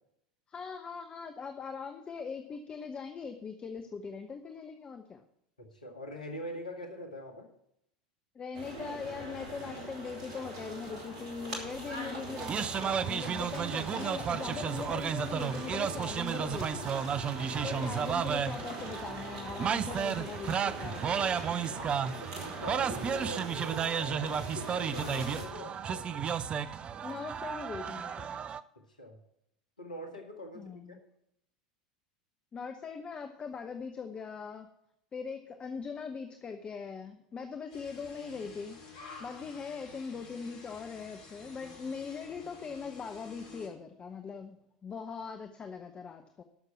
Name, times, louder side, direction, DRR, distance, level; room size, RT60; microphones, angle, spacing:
voice 1, 0.5-5.2 8.3-16.9 17.6-21.1 21.5-21.9 27.0-28.4 30.5-31.0 32.5-34.7 35.1-38.8 39.2-44.6 44.8-46.4, left 5 dB, 25° left, 7 dB, 0.9 m, -41 dB
voice 2, 5.6-7.5 17.7-17.8 22.2-26.3 29.0-29.2 29.8-31.0, left 1 dB, 80° left, 3 dB, 1.9 m, -43 dB
sound 1, 8.5-25.5, right 1 dB, 60° right, 3.0 m, -42 dB
sound 2, 12.4-28.6, right 7 dB, 25° right, 0.5 m, -33 dB
sound 3, 37.7-43.7, left 3 dB, 55° left, 2.7 m, -51 dB
13.0 x 6.6 x 5.8 m, 0.78 s
figure-of-eight pair, 80°, 4 cm